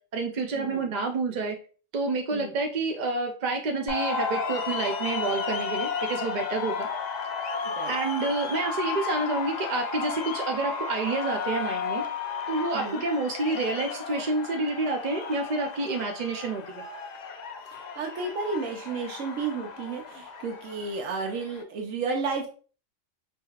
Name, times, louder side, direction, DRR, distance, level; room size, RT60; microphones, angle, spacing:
voice 1, 0.1-1.6 1.9-6.9 7.9-12.0 12.5-16.8, right 3 dB, 55° right, 3 dB, 0.5 m, -29 dB
sound 1, 3.9-21.6, left 5 dB, 80° left, 0.3 m, -33 dB
voice 2, 12.7-13.0 17.7-22.5, right 4 dB, 85° right, 2 dB, 1.1 m, -32 dB
4.6 x 2.8 x 2.3 m, 0.39 s
omnidirectional pair, 1.3 m